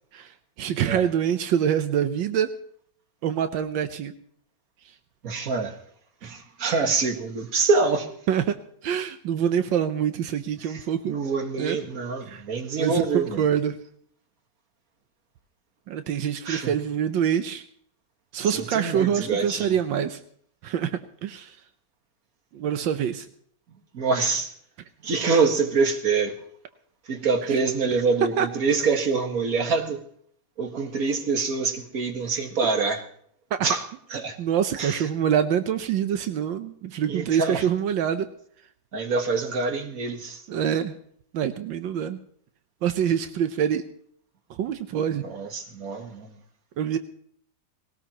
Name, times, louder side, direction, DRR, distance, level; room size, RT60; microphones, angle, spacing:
voice 1, 0.1-2.5 3.2-4.1 6.2-6.3 8.3-8.5 8.8-11.2 11.6-11.8 12.3-12.4 12.8-13.8 15.9-17.6 18.3-20.2 20.6-21.6 22.5-23.3 28.4-28.5 33.5-33.7 34.4-38.3 40.5-41.0 41.3-42.2 42.8-43.8 44.6-45.2 46.8-47.0, right 9 dB, 85° right, 9 dB, 1.5 m, -25 dB
voice 2, 5.2-5.8 6.2-8.1 10.6-13.4 16.4-16.7 18.4-19.8 23.9-24.5 25.0-26.3 27.1-30.0 30.6-33.0 33.6-33.8 34.1-34.4 34.8-35.1 37.1-37.7 38.9-40.4 45.2-46.3, right 4 dB, 50° right, 4 dB, 2.1 m, -25 dB
19.5 x 18.5 x 3.0 m, 0.63 s
omnidirectional pair, 2.0 m